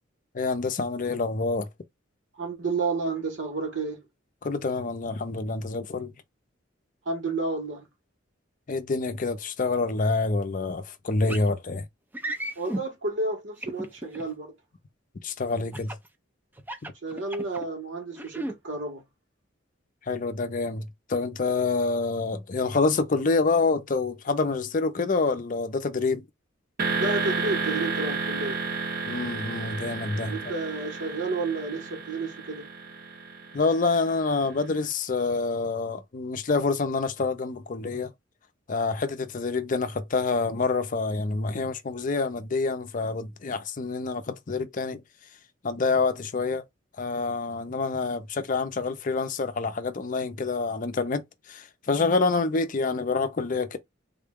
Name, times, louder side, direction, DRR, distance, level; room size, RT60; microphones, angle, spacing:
voice 1, 0.3-1.7 4.4-6.1 8.7-11.8 15.2-15.9 20.1-26.2 29.1-30.3 33.5-38.1 38.7-45.0 45.6-46.7 47.0-53.8, left 3 dB, 45° left, 0.5 m, -27 dB
voice 2, 2.4-4.1 7.0-7.9 12.6-14.5 17.0-19.0 27.0-28.6 30.2-32.7, right 3 dB, 75° right, 1.3 m, -31 dB
sound 1, 11.3-11.5 12.1-12.8 13.6-14.2 15.7-16.1 16.6-17.7 18.1-18.5, right 1 dB, 10° right, 0.5 m, -34 dB
sound 2, 26.8-34.6, right 4 dB, 50° right, 0.8 m, -32 dB
3.7 x 2.2 x 3.5 m
head